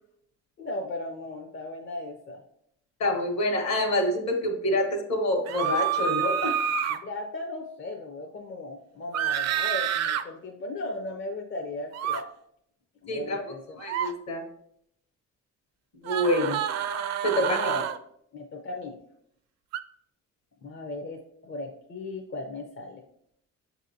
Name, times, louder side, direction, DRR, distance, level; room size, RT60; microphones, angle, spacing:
voice 1, 0.6-2.4 6.7-12.3 13.0-13.8 17.4-17.8 18.3-19.0 20.6-23.0, left 2 dB, 40° left, 1 dB, 0.6 m, -37 dB
voice 2, 3.0-6.5 13.1-13.4 13.8-14.4 16.0-16.6 17.2-17.6, left 1 dB, 60° left, 3 dB, 1.3 m, -26 dB
sound 1, 5.5-7.0 9.1-10.2 11.9-12.2 13.8-14.1 16.1-18.0 19.7-19.8, right 8 dB, 60° right, 0.4 m, -28 dB
7.0 x 2.8 x 2.7 m, 0.71 s
cardioid pair, 90°, 30 cm